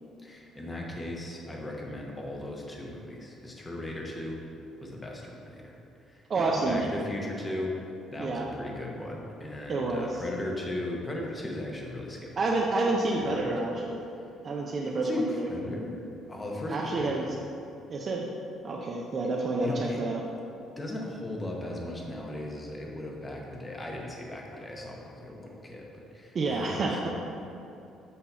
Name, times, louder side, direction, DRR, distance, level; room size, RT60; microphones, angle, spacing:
voice 1, 0.2-4.4 4.8-5.8 6.1-7.7 8.1-12.5 13.3-13.5 14.8-17.3 19.2-19.3 19.6-20.0 20.8-27.1, left 1 dB, 15° left, -1 dB, 0.8 m, -37 dB
voice 2, 6.3-6.9 8.2-8.5 9.7-10.2 12.4-14.0 14.4-15.5 16.7-17.2 17.9-18.3 18.6-20.2 26.3-27.1, right 2 dB, 35° right, -1 dB, 0.5 m, -29 dB
8.1 x 2.8 x 5.4 m, 2.7 s
cardioid pair, 135°, 0 cm